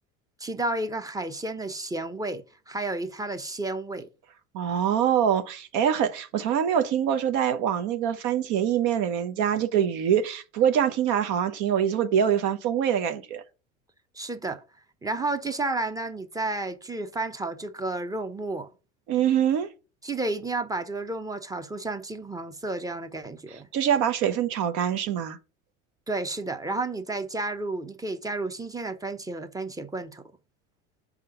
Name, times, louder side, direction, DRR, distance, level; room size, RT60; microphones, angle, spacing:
voice 1, 0.4-4.1 14.1-14.6 15.0-18.7 20.0-23.7 26.1-30.2, right 2 dB, 10° right, 0.8 m, -31 dB
voice 2, 4.5-13.4 19.1-19.7 23.7-25.4, right 9 dB, 55° right, 0.8 m, -24 dB
5.8 x 3.6 x 5.5 m
hypercardioid pair, 75°, 37 cm